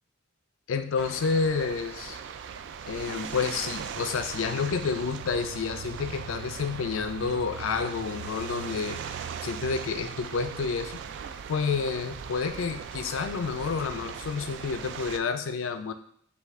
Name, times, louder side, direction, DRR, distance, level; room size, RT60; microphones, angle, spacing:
voice 1, 0.7-2.2 2.9-9.0 9.4-11.0 11.5-15.9, left 5 dB, 70° left, 9 dB, 0.4 m, -29 dB
sound 1, 1.0-15.2, right 7 dB, 60° right, 0.3 m, -39 dB
5.5 x 2.3 x 3.5 m, 0.63 s
head